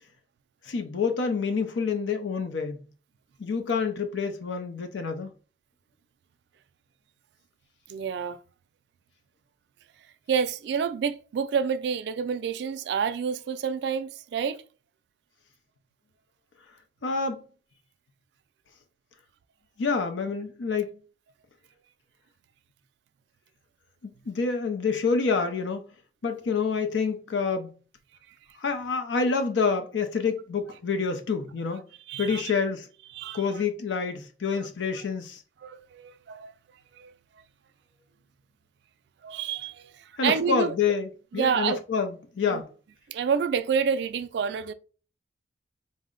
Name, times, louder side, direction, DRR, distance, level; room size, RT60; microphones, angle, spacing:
voice 1, 0.6-2.8 3.4-5.3 17.0-17.4 19.8-21.0 24.0-25.8 26.2-27.7 28.6-31.8 32.2-32.9 33.3-35.4 40.2-42.7, left 5 dB, 75° left, 0.5 m, -27 dB
voice 2, 7.9-8.4 10.3-14.6 32.1-32.5 33.1-33.4 34.5-34.7 34.9-35.1 35.6-36.5 36.9-37.1 39.2-40.7 41.3-41.8 42.5-42.6 43.1-44.7, right 6 dB, 60° right, 0.3 m, -28 dB
4.1 x 2.0 x 3.6 m
head